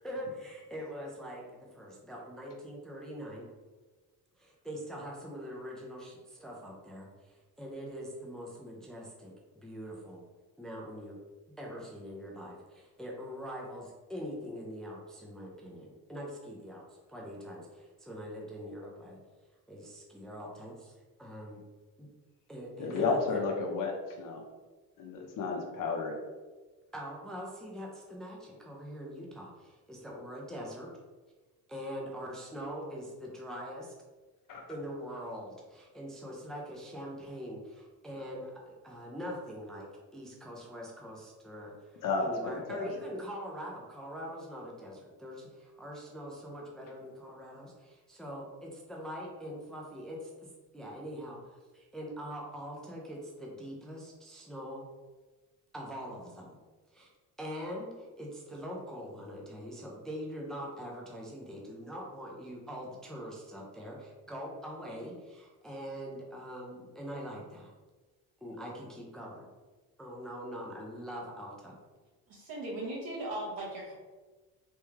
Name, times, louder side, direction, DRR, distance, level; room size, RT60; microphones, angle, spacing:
voice 1, 0.0-3.5 4.4-10.2 10.6-11.2 11.6-16.8 17.1-19.2 19.7-20.9 21.2-21.6 22.0-22.1 22.5-23.4 26.9-30.9 31.7-33.9 34.7-50.3 50.7-54.8 55.7-56.6 56.9-57.1 57.4-67.7 68.4-69.5 70.0-71.8, equal, ahead, -2 dB, 0.4 m, -43 dB
voice 2, 22.8-24.4 25.0-26.2 34.5-34.6 42.0-42.9, left 4 dB, 60° left, 1 dB, 0.7 m, -32 dB
voice 3, 72.3-73.9, right 1 dB, 70° right, -4 dB, 1.3 m, -38 dB
3.4 x 2.2 x 3.1 m, 1.3 s
cardioid pair, 110°, 37 cm